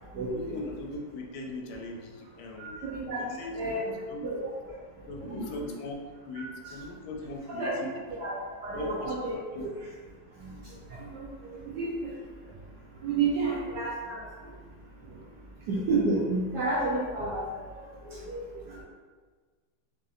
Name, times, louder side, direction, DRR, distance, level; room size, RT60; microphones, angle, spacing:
voice 1, 0.3-2.8 3.1-4.3 4.6-4.7 5.1-8.0 8.5-9.7 11.5-11.6, left 2 dB, 90° left, 1 dB, 1.4 m, -40 dB
voice 2, 2.6-3.2 3.5-3.8 4.2-4.5 5.2-5.5 6.6-6.7 7.5-7.7 8.1-8.4 8.6-9.7 10.4-10.5 11.0-11.2 11.7-12.1 13.0-14.2 15.7-17.5 18.0-18.8, right 3 dB, 70° right, -5 dB, 1.0 m, -30 dB
4.1 x 2.5 x 2.4 m, 1.5 s
omnidirectional pair, 2.3 m